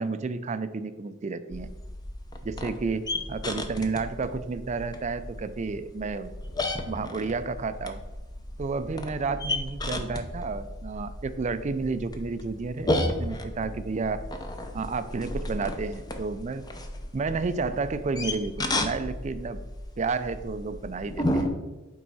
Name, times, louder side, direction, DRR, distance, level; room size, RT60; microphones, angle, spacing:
voice 1, 0.0-1.7 2.4-6.3 6.9-8.0 8.6-12.9 13.2-14.3 14.7-16.6 17.1-19.6 20.0-21.5, right 4 dB, 35° right, 11 dB, 0.4 m, -31 dB
sound 1, 1.5-21.5, left 1 dB, 20° left, 0.6 m, -34 dB
7.5 x 4.6 x 4.1 m, 1.2 s
head